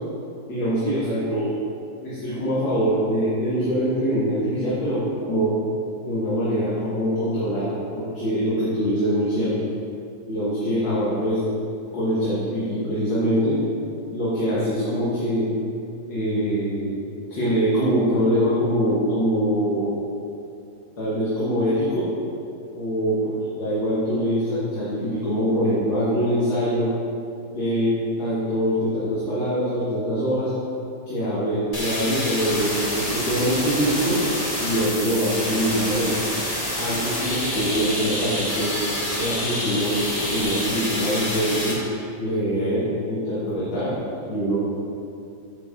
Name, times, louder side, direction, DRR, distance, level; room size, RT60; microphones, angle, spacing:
voice 1, 0.5-1.5 2.0-5.5 6.0-9.7 10.3-11.5 11.9-13.6 14.1-15.5 16.1-17.0 17.3-20.0 21.0-22.1 22.7-23.2 23.6-26.9 27.5-30.5 31.1-34.2 34.6-36.2 36.8-38.7 39.2-40.0 40.3-41.8 42.2-43.9 44.3-44.6, equal, 85° left, -10 dB, 2.3 m, -23 dB
sound 1, 31.7-41.7, left 1 dB, 25° left, 1.3 m, -27 dB
8.9 x 5.9 x 3.7 m, 2.6 s
omnidirectional pair, 2.0 m